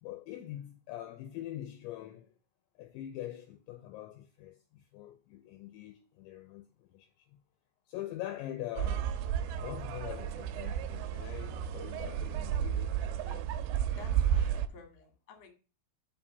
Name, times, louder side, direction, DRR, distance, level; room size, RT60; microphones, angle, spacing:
voice 1, 0.0-2.3 2.8-7.4 7.9-9.1 9.6-13.0 14.4-14.5, left 13 dB, 85° left, 2.7 m, -43 dB
sound 1, 8.8-14.7, right 9 dB, 85° right, 2.9 m, -32 dB
voice 2, 13.0-13.5 13.9-15.5, left 4 dB, 50° left, 1.9 m, -51 dB
7.3 x 5.4 x 6.8 m
omnidirectional pair, 6.0 m